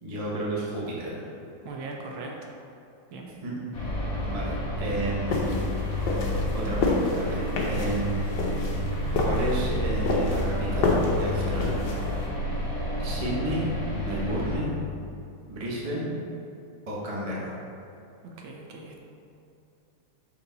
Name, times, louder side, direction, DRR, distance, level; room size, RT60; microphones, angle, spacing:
voice 1, 0.0-1.3 3.4-3.5 4.2-5.6 6.0-8.7 9.2-11.9 13.0-14.7 15.5-16.1 16.9-17.5, right 1 dB, 35° right, -5 dB, 0.5 m, -32 dB
voice 2, 1.6-2.5 3.1-3.3 18.2-19.0, right 3 dB, 70° right, 0 dB, 1.5 m, -39 dB
sound 1, 3.7-14.6, left 1 dB, 40° left, 1.1 m, -30 dB
sound 2, 5.3-12.2, left 3 dB, 65° left, 1.3 m, -29 dB
5.8 x 4.6 x 3.9 m, 2.7 s
omnidirectional pair, 2.4 m